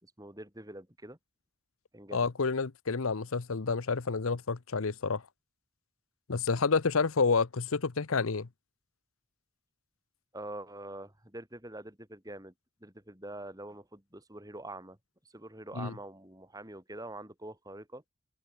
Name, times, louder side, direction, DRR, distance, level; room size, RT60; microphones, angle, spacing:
voice 1, 0.0-1.2 1.9-2.3 10.3-12.5 12.8-15.0 15.3-18.0, right 1 dB, 15° right, 4.4 m, -45 dB
voice 2, 2.1-5.2 6.3-8.5 15.8-15.9, left 4 dB, 75° left, 0.8 m, -29 dB
head